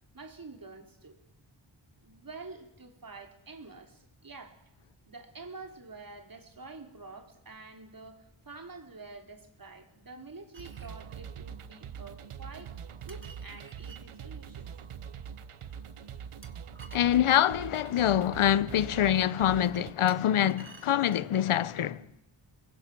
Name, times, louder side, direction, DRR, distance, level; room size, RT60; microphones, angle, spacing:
voice 1, 0.1-1.2 2.0-4.6 5.1-12.7 13.1-14.7 22.0-22.1, right 3 dB, 45° right, 3.1 m, -47 dB
sound 1, 10.5-11.0 13.1-14.0 16.4-17.9 20.1-21.4, right 3 dB, 25° right, 2.3 m, -54 dB
sound 2, 10.6-19.9, right 7 dB, 90° right, 1.0 m, -43 dB
voice 2, 16.9-22.0, left 11 dB, 80° left, 0.7 m, -25 dB
23.0 x 21.5 x 6.0 m
wide cardioid pair, 70°, 49 cm